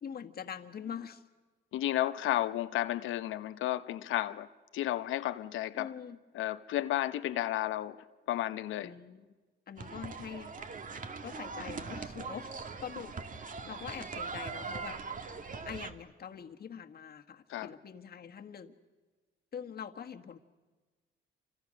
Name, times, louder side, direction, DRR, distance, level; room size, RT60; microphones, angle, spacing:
voice 1, 0.0-1.2 5.7-6.2 8.8-9.3 9.7-10.5 11.2-12.5 12.8-13.4 13.7-15.0 15.6-18.8 19.5-20.4, left 7 dB, 50° left, 1.6 m, -44 dB
voice 2, 1.7-4.5 4.7-5.9 6.3-8.0 8.3-8.9 17.5-17.7, left 13 dB, 80° left, 0.9 m, -32 dB
sound 1, 9.8-15.9, right 4 dB, 40° right, 1.7 m, -41 dB
29.0 x 25.5 x 6.5 m
cardioid pair, 90°, 20 cm